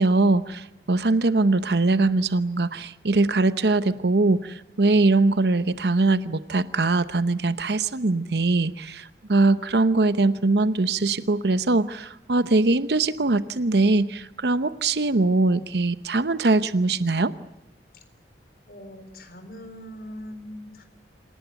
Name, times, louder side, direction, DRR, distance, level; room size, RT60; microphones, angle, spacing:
voice 1, 0.0-17.3, right 3 dB, 70° right, 13 dB, 0.9 m, -22 dB
voice 2, 18.7-20.8, equal, 55° left, 6 dB, 4.1 m, -41 dB
27.5 x 18.5 x 9.2 m, 0.91 s
head